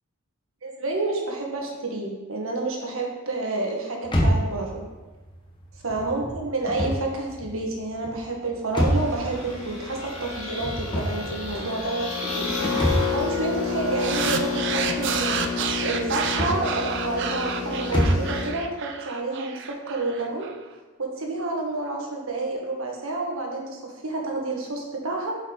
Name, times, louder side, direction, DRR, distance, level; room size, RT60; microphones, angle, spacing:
voice 1, 0.6-4.8 5.8-12.6 13.1-20.5 21.0-25.4, right 2 dB, 75° right, 0 dB, 1.5 m, -29 dB
sound 1, 4.0-18.4, equal, 20° left, 1.0 m, -29 dB
sound 2, 8.7-18.5, left 5 dB, 70° left, 2.4 m, -30 dB
sound 3, 14.0-20.5, right 7 dB, 55° right, 0.5 m, -30 dB
7.8 x 5.3 x 3.9 m, 1.2 s
head